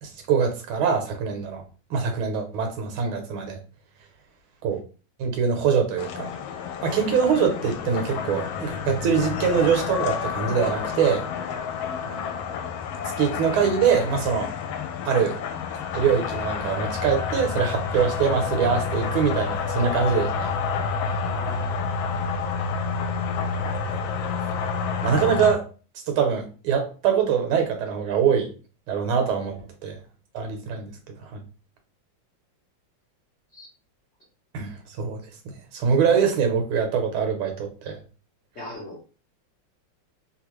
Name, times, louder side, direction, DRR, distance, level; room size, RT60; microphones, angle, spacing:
voice 1, 0.0-1.6 1.9-3.6 4.6-4.8 5.2-6.3 6.8-11.2 12.1-12.4 13.2-14.5 15.0-15.4 15.9-20.5 25.0-25.6 26.1-28.5 28.9-30.0 30.3-31.3 34.5-38.0, right 6 dB, 90° right, 1.6 m, -24 dB
sound 1, 6.0-25.5, left 6 dB, 80° left, 1.3 m, -29 dB
voice 2, 21.2-22.1 30.6-30.8 33.5-33.7 38.5-39.0, left 1 dB, 60° left, 0.7 m, -40 dB
3.5 x 2.4 x 3.0 m
omnidirectional pair, 2.2 m